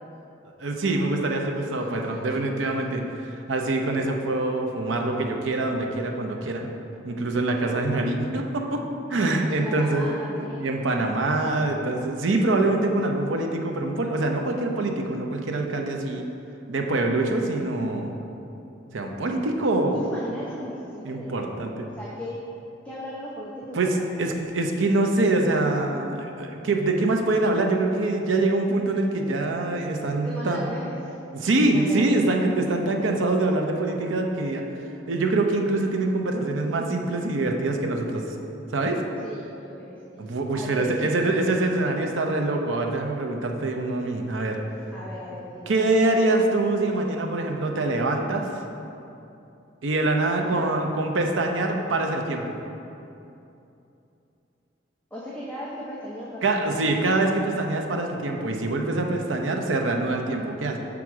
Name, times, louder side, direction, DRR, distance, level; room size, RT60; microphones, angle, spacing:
voice 1, 0.6-3.0 3.4-6.7 7.0-8.8 9.1-16.2 16.7-18.1 18.9-20.0 21.0-21.8 23.7-23.9 24.2-30.6 31.3-34.6 35.1-38.2 38.7-39.0 40.2-44.6 45.7-48.6 49.8-52.6 56.4-60.8, right 2 dB, 85° right, 3 dB, 0.6 m, -24 dB
voice 2, 1.8-2.3 9.5-10.8 19.9-22.4 22.8-24.3 30.2-31.1 31.6-32.3 39.2-40.0 40.5-41.4 44.9-45.7 50.4-50.7 55.1-56.7, equal, 10° left, -6 dB, 0.6 m, -37 dB
5.9 x 3.6 x 6.0 m, 2.8 s
head